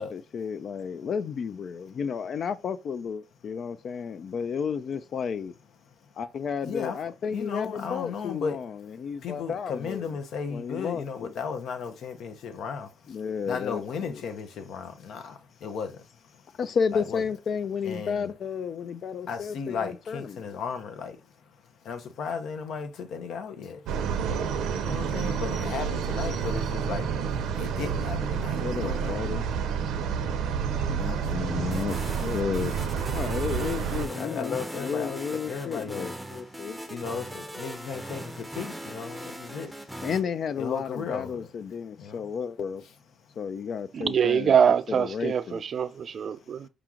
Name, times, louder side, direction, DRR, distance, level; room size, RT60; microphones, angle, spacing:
voice 1, 0.1-5.5 6.2-10.2 10.5-11.3 13.1-14.2 16.6-20.5 28.6-29.4 30.9-36.8 40.0-42.8 43.4-44.6 44.9-45.6, left 6 dB, 60° left, 0.3 m, -32 dB
voice 2, 6.6-7.0 7.2-8.6 9.2-16.4 16.9-17.2 17.8-18.3 19.3-23.9 24.8-27.2 27.5-29.2 30.9-31.6 34.1-36.1 36.6-39.9 40.6-41.5 41.9-42.3, left 6 dB, 75° left, 0.7 m, -35 dB
sound 1, 23.9-34.1, right 7 dB, 90° right, 0.6 m, -29 dB
sound 2, 31.7-40.2, right 1 dB, 5° right, 0.6 m, -39 dB
voice 3, 43.9-46.7, right 7 dB, 55° right, 0.3 m, -24 dB
5.0 x 2.9 x 3.7 m
cardioid pair, 90°, 0 cm